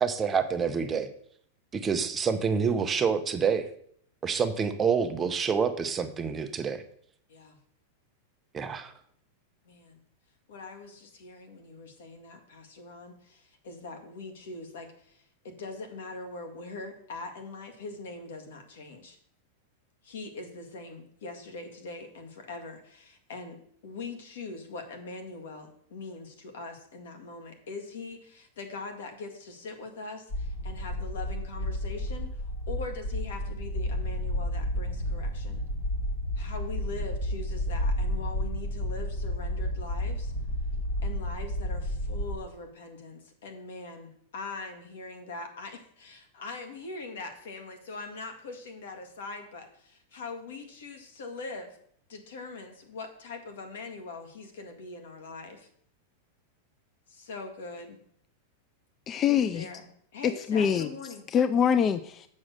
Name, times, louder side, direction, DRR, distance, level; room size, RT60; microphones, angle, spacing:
voice 1, 0.0-1.1 1.7-3.7 4.2-6.8 8.5-8.9, right 6 dB, 15° right, 8 dB, 0.6 m, -27 dB
voice 2, 9.7-10.0 10.5-19.2 20.0-23.6 23.8-35.6 36.4-40.3 41.0-51.8 52.1-55.7 57.1-58.0 59.3-59.9 60.1-61.2, left 3 dB, 80° left, 6 dB, 1.9 m, -42 dB
sound 1, 30.3-42.3, left 1 dB, 45° left, 4.8 m, -31 dB
voice 3, 59.1-59.7 60.2-60.9 61.3-62.3, left 8 dB, 25° left, 13 dB, 0.3 m, -24 dB
7.4 x 6.2 x 6.4 m, 0.65 s
supercardioid pair, 160°, 0 cm